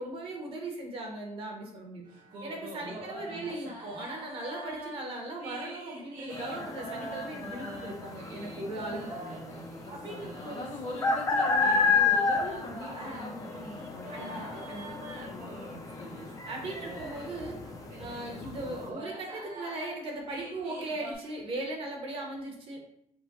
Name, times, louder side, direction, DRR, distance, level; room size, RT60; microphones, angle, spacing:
voice 1, 0.0-2.0 2.4-9.0 9.9-10.5 13.0-13.8 14.1-14.9 16.5-17.6 18.0-22.8, right 2 dB, 40° right, 1 dB, 0.9 m, -38 dB
sound 1, 2.0-21.1, right 1 dB, 70° right, 1.7 m, -45 dB
voice 2, 3.3-3.7 8.9-14.6 15.2-16.4, left 2 dB, 50° left, -3 dB, 1.4 m, -43 dB
sound 2, 6.3-18.9, left 4 dB, 25° left, 0.6 m, -32 dB
4.7 x 2.2 x 4.0 m, 0.71 s
cardioid pair, 150°, 14 cm